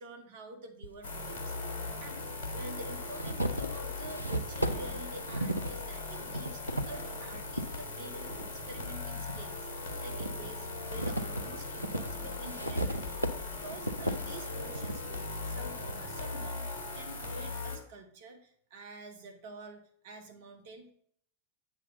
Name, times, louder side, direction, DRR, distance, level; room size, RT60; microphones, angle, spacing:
voice 1, 0.0-20.9, right 2 dB, 55° right, 4 dB, 1.2 m, -48 dB
sound 1, 0.8-0.9 2.0-2.1 2.6-7.7 8.2-9.4 9.9-16.0, right 1 dB, 90° right, 0.6 m, -36 dB
sound 2, 1.0-17.8, left 3 dB, 55° left, 1.5 m, -39 dB
8.1 x 3.7 x 5.3 m, 0.64 s
figure-of-eight pair, 90°, 0 cm